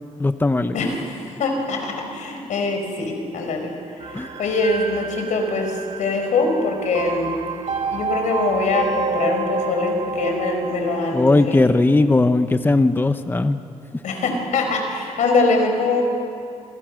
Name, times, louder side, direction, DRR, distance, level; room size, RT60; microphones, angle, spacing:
voice 1, 0.2-0.8 4.1-4.3 11.1-13.6, left 2 dB, 15° left, 9 dB, 0.9 m, -18 dB
voice 2, 0.7-3.7 4.0-7.4 7.9-11.6 14.0-16.0, left 3 dB, 80° left, 4 dB, 4.8 m, -23 dB
sound 1, 4.0-11.1, right 3 dB, 55° right, 2.1 m, -28 dB
27.5 x 26.5 x 6.4 m, 2.6 s
cardioid pair, 90°, 12 cm